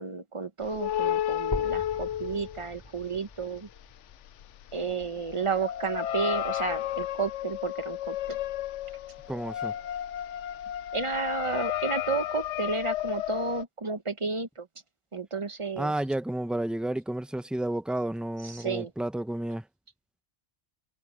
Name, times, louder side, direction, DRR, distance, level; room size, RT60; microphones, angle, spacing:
voice 1, 0.0-3.7 4.7-8.4 10.9-14.7 15.1-15.9 18.4-18.9, right 4 dB, 30° right, 1.0 m, -32 dB
sound 1, 0.6-3.1 3.4-13.6, left 11 dB, 90° left, 0.9 m, -32 dB
sound 2, 1.5-5.5 6.1-6.2 6.7-6.8 7.2-7.3 8.1-8.2, equal, 15° left, 4.5 m, -42 dB
voice 2, 9.3-9.7 15.8-19.6, right 1 dB, ahead, 0.5 m, -31 dB
omnidirectional pair, 1.2 m